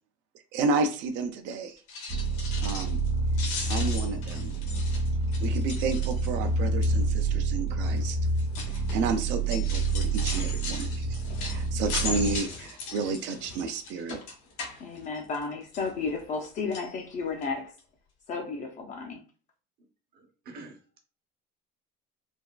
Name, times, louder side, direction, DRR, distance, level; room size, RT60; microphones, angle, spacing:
voice 1, 0.5-1.8 2.6-3.0 3.7-4.5 5.4-8.2 8.7-14.2, right 4 dB, 65° right, 6 dB, 0.4 m, -31 dB
sound 1, 1.8-3.1 3.3-6.5 6.8-7.2 7.9-15.4 15.7-16.5 16.7-16.9 17.4-17.5 17.8-17.9, left 4 dB, 90° left, 1.0 m, -38 dB
sound 2, 2.1-12.4, right 3 dB, 85° right, 0.9 m, -28 dB
voice 2, 14.8-17.7 18.3-19.2, left 4 dB, 40° left, 3 dB, 0.4 m, -33 dB
voice 3, 20.1-21.0, right 3 dB, 50° right, 3 dB, 0.9 m, -47 dB
3.3 x 2.3 x 2.2 m, 0.37 s
cardioid pair, 155°, 20 cm